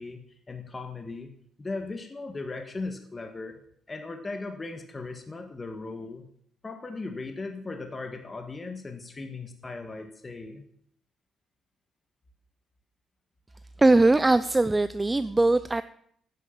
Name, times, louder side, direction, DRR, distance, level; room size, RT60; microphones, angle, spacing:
voice 1, 0.0-3.5 3.9-6.3 6.6-10.7, left 3 dB, 25° left, 5 dB, 1.7 m, -38 dB
voice 2, 13.8-15.8, right 2 dB, 15° right, 14 dB, 0.5 m, -21 dB
11.0 x 9.2 x 7.3 m, 0.67 s
cardioid pair, 90°, 0 cm